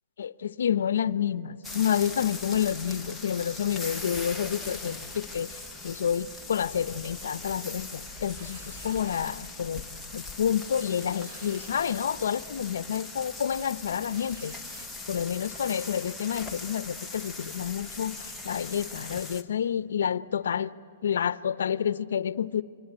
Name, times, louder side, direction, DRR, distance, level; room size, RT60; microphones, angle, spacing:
voice 1, 0.2-5.5 5.8-9.8 10.1-14.5 15.1-20.7 21.0-22.6, left 8 dB, 80° left, 16 dB, 0.7 m, -29 dB
sound 1, 1.6-19.4, left 3 dB, ahead, 0.9 m, -40 dB
sound 2, 8.2-9.3 9.9-10.1 10.4-10.5 11.0-12.0 12.6-12.7 13.9-14.9, right 1 dB, 35° right, 3.8 m, -49 dB
26.5 x 24.0 x 8.9 m, 2.5 s
hypercardioid pair, 165°, 0 cm